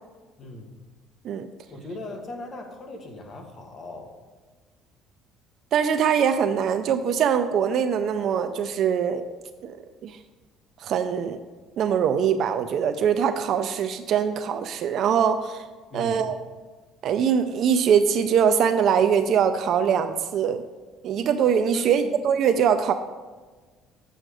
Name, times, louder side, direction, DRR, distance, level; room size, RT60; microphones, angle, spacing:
voice 1, 0.4-0.7 1.7-4.1 15.9-16.3 21.7-22.2, left 2 dB, 30° left, 4 dB, 1.1 m, -38 dB
voice 2, 5.7-9.3 9.6-9.8 10.0-10.2 10.8-11.4 11.8-15.7 15.9-16.4 17.0-20.6 21.0-22.9, right 7 dB, 45° right, 9 dB, 0.4 m, -22 dB
7.7 x 6.5 x 4.8 m, 1.4 s
cardioid pair, 170°, 0 cm